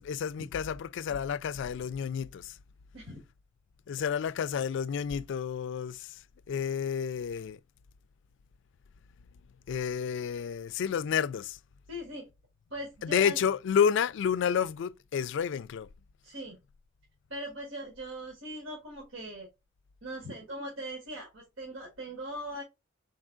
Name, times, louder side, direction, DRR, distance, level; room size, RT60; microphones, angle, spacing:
voice 1, 0.0-2.6 3.9-6.2 6.5-7.6 9.7-11.6 13.0-15.9, left 7 dB, 65° left, 0.3 m, -30 dB
voice 2, 11.9-12.3 12.7-13.4 16.2-16.6 17.3-19.5 20.0-22.6, right 1 dB, 90° right, 1.6 m, -40 dB
4.5 x 3.9 x 2.4 m
head